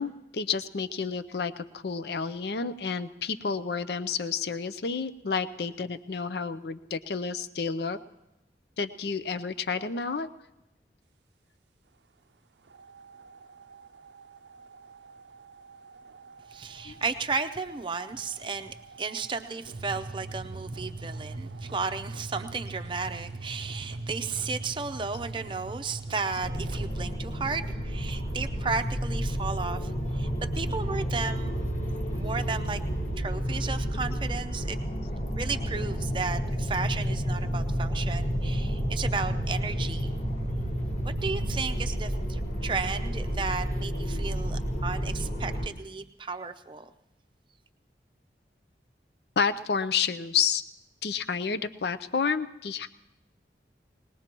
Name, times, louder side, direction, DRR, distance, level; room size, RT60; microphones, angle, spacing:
voice 1, 0.0-8.0 8.8-10.3 16.9-17.0 49.4-50.6 51.0-52.9, left 5 dB, 65° left, 12 dB, 0.6 m, -30 dB
sound 1, 12.6-27.0, right 3 dB, 80° right, 0.5 m, -42 dB
voice 2, 16.5-30.3 30.5-31.6 32.2-32.8 33.2-35.1 35.4-40.1 41.0-46.9, right 4 dB, 30° right, 8 dB, 0.6 m, -34 dB
sound 2, 26.4-45.7, equal, 40° left, 1.4 m, -30 dB
21.5 x 19.0 x 3.0 m, 0.90 s
head